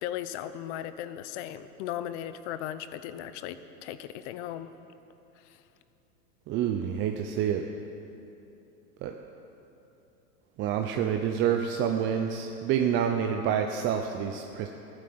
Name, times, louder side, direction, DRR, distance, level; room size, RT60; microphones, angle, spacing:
voice 1, 0.0-4.7 5.4-5.6, left 11 dB, 45° left, 12 dB, 0.8 m, -37 dB
voice 2, 6.5-7.6 9.0-9.1 10.6-14.7, right 8 dB, 25° right, 4 dB, 0.6 m, -28 dB
14.5 x 9.7 x 6.9 m, 2.9 s
hypercardioid pair, 130°, 47 cm